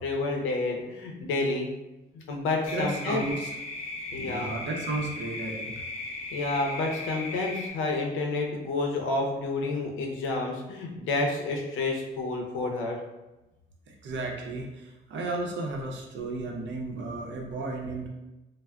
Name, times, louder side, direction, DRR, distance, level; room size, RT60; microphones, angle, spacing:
voice 1, 0.0-1.7 2.1-3.2 4.1-4.5 6.3-13.0, left 3 dB, 85° left, 1 dB, 0.6 m, -29 dB
sound 1, 2.7-7.7, left 2 dB, 30° left, 0.5 m, -37 dB
voice 2, 2.7-3.5 4.1-5.7 13.9-18.1, right 2 dB, 65° right, 1 dB, 0.6 m, -33 dB
3.4 x 2.0 x 2.2 m, 1.0 s
cardioid pair, 90°, 20 cm